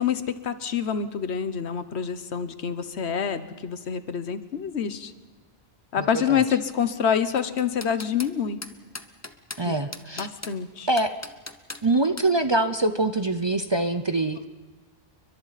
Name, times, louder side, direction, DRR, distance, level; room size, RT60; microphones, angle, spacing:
voice 1, 0.0-5.1 5.9-8.6 9.6-9.7 10.2-10.9, left 7 dB, 80° left, 12 dB, 1.3 m, -27 dB
voice 2, 6.0-6.4 9.6-10.3 10.9-11.1 11.8-14.5, right 2 dB, 30° right, 9 dB, 0.6 m, -24 dB
sound 1, 7.4-8.3 8.6-9.6 9.9-10.6 11.0-11.8 12.2-12.3, left 2 dB, 15° left, 0.7 m, -38 dB
30.0 x 23.0 x 4.1 m, 1.3 s
omnidirectional pair, 1.1 m